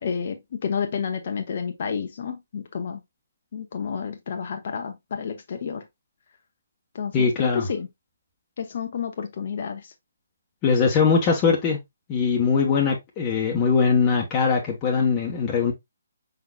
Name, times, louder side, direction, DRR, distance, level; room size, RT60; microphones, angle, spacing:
voice 1, 0.0-3.0 3.5-5.9 6.9-7.9 8.6-9.9, left 6 dB, 50° left, 0.8 m, -30 dB
voice 2, 7.1-7.7 10.6-11.8 12.1-15.7, left 5 dB, 25° left, 1.0 m, -21 dB
5.5 x 3.9 x 2.2 m
figure-of-eight pair, 140°, 0 cm